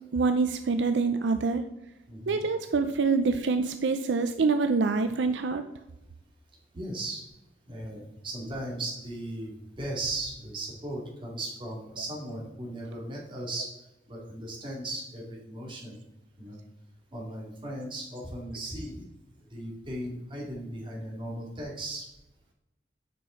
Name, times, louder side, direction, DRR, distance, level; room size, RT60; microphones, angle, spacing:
voice 1, 0.1-1.6 2.3-5.6, right 4 dB, 75° right, 8 dB, 0.5 m, -26 dB
voice 2, 2.1-2.4 6.7-7.2 7.7-13.7 14.1-16.0 16.4-16.6 17.1-19.1 19.5-22.1, right 1 dB, 30° right, -3 dB, 2.3 m, -37 dB
7.5 x 5.7 x 4.4 m, 0.92 s
head